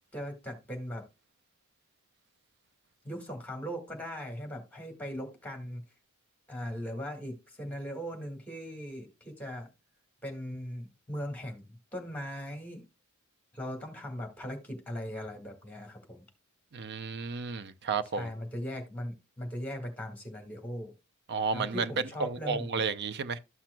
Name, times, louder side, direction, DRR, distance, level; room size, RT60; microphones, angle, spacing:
voice 1, 0.1-1.0 3.0-5.8 6.5-9.7 10.2-12.8 13.5-16.3 18.1-20.9 21.5-22.7, equal, 5° left, 1.8 m, -39 dB
voice 2, 16.7-18.3 21.3-21.9 22.2-23.4, right 5 dB, 50° right, 0.6 m, -32 dB
12.5 x 5.9 x 2.2 m
head